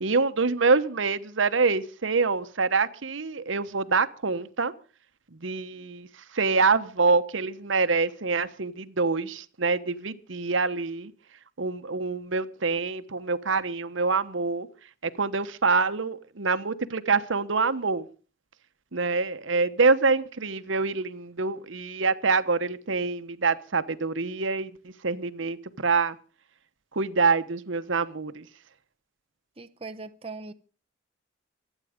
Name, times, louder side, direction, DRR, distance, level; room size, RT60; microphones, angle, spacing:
voice 1, 0.0-4.7 5.4-6.1 6.3-11.1 11.6-14.7 15.0-18.1 18.9-26.2 26.9-28.4, right 4 dB, 75° right, 1.0 m, -26 dB
voice 2, 29.6-30.5, right 3 dB, 30° right, 0.7 m, -39 dB
25.0 x 9.1 x 5.0 m
head